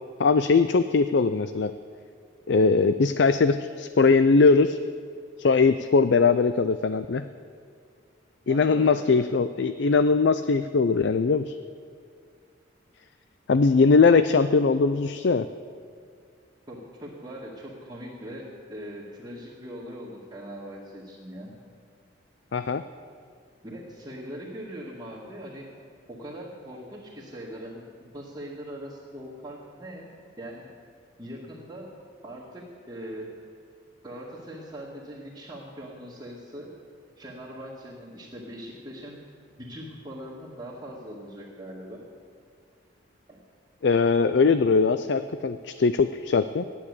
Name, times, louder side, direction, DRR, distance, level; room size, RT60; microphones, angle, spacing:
voice 1, 0.2-1.7 2.5-4.8 5.4-7.3 8.5-11.5 13.5-15.5 22.5-22.8 43.8-46.7, left 4 dB, 60° left, 12 dB, 0.4 m, -21 dB
voice 2, 8.4-9.2 16.7-21.5 23.6-25.7 26.1-27.8 28.1-30.1 30.4-30.7 31.2-31.9 32.2-33.3 34.0-36.7 37.2-39.2 39.6-42.0 43.3-43.4, equal, 20° right, -9 dB, 2.3 m, -41 dB
15.0 x 11.0 x 8.4 m, 2.2 s
head